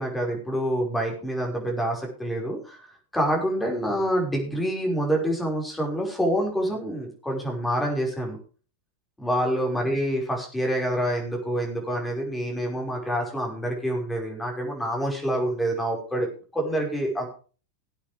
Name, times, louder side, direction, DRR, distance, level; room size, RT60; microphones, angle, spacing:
voice 1, 0.0-8.4 9.2-17.3, equal, 5° left, 1 dB, 5.3 m, -27 dB
18.5 x 8.8 x 3.4 m, 0.37 s
figure-of-eight pair, 90°, 0 cm